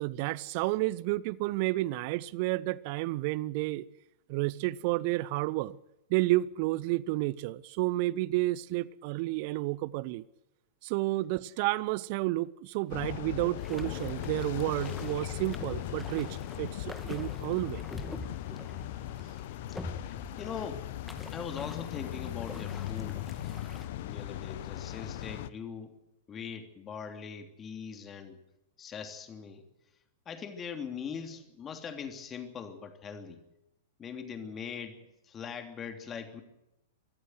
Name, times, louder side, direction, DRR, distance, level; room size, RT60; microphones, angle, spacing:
voice 1, 0.0-3.9 4.3-5.8 6.1-10.2 10.8-17.8, right 19 dB, 45° right, 0.8 m, -31 dB
sound 1, 12.9-25.5, left 13 dB, 50° left, 1.0 m, -38 dB
sound 2, 13.6-23.9, left 2 dB, 5° left, 2.0 m, -46 dB
voice 2, 19.7-20.0 20.4-20.9 21.3-23.3 23.9-26.0 26.3-28.4 28.8-29.6 30.2-33.4 34.0-36.4, left 6 dB, 20° left, 3.1 m, -41 dB
23.0 x 15.0 x 7.9 m
figure-of-eight pair, 100°, 0 cm